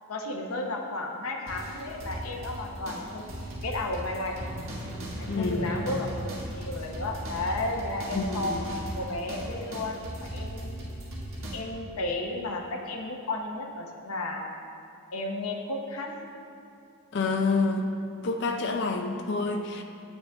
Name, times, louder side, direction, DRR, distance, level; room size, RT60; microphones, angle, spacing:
voice 1, 0.1-3.2 3.6-4.4 5.0-8.6 8.9-11.0 11.5-14.5 15.1-16.1, left 2 dB, 80° left, 1 dB, 0.9 m, -33 dB
sound 1, 1.5-11.6, right 1 dB, 70° right, 1.6 m, -37 dB
voice 2, 5.3-5.8 8.1-8.6 17.1-17.9 18.2-19.8, left 3 dB, 50° left, 4 dB, 0.4 m, -28 dB
9.0 x 7.9 x 3.5 m, 2.6 s
head